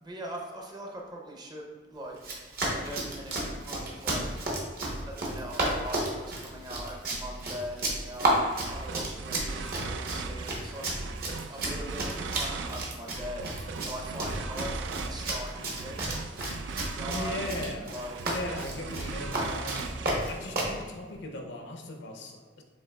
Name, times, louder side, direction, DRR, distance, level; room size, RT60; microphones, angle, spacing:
voice 1, 0.0-2.2 2.8-4.3 4.7-11.0 11.5-13.5 13.8-16.2 16.9-18.2, right 1 dB, 25° right, 0 dB, 0.6 m, -41 dB
Run, 2.2-20.8, right 1 dB, 55° right, 0.9 m, -32 dB
sound 1, 8.4-20.6, right 4 dB, 75° right, 0.3 m, -39 dB
voice 2, 17.0-17.9 18.2-20.0 20.3-22.6, left 1 dB, 65° left, 3 dB, 0.6 m, -38 dB
7.3 x 2.8 x 2.2 m, 1.5 s
head